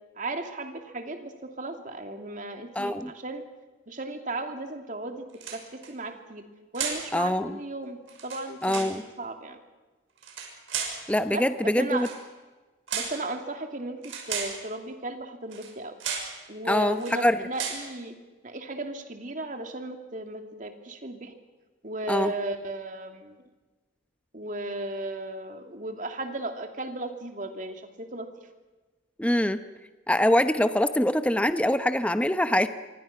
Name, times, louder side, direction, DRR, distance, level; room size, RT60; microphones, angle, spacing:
voice 1, 0.2-3.4 3.9-5.6 5.9-6.4 6.7-9.6 11.3-12.1 12.9-14.0 14.3-16.0 16.5-18.1 18.4-21.4 21.8-23.3 24.3-28.3, right 2 dB, 40° right, 5 dB, 2.8 m, -35 dB
voice 2, 2.8-3.1 7.1-7.6 8.6-9.0 11.1-12.1 16.7-17.4 22.1-22.3 29.2-29.6 30.1-32.7, left 1 dB, 5° left, 10 dB, 0.9 m, -24 dB
sound 1, 5.3-5.9 6.7-7.1 8.1-9.0 10.2-11.0 11.9-12.2 12.9-13.2 14.0-14.6 15.5-15.7 16.0-16.4 16.9-17.2 17.5-17.9, right 6 dB, 90° right, 6.4 m, -34 dB
27.5 x 23.5 x 6.0 m, 1.2 s
head